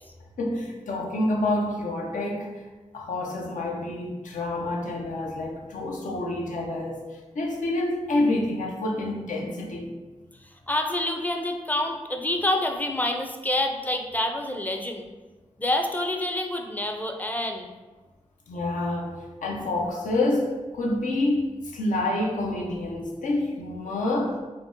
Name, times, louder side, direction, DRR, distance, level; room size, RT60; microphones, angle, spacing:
voice 1, 0.4-2.6 2.9-9.9 18.5-21.5 21.7-24.4, left 2 dB, 85° left, -1 dB, 0.5 m, -28 dB
voice 2, 10.7-15.0 15.6-17.7, left 1 dB, 15° left, 3 dB, 0.4 m, -27 dB
2.7 x 2.1 x 3.5 m, 1.2 s
cardioid pair, 45°, 13 cm